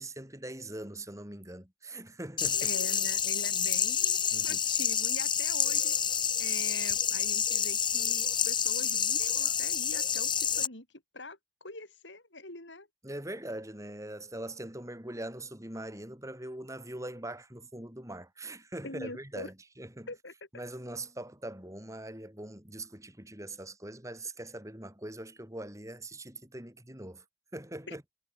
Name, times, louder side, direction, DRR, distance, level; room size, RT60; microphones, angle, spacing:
voice 1, 0.0-2.6 4.3-4.6 13.0-20.1 20.5-27.2 27.5-28.0, right 1 dB, 15° right, 4.7 m, -42 dB
sound 1, 2.4-10.7, left 8 dB, 25° left, 1.2 m, -28 dB
voice 2, 2.6-5.9 6.4-10.9 11.1-12.9 18.8-19.5 20.1-20.3 27.9-28.0, left 3 dB, 70° left, 6.7 m, -43 dB
head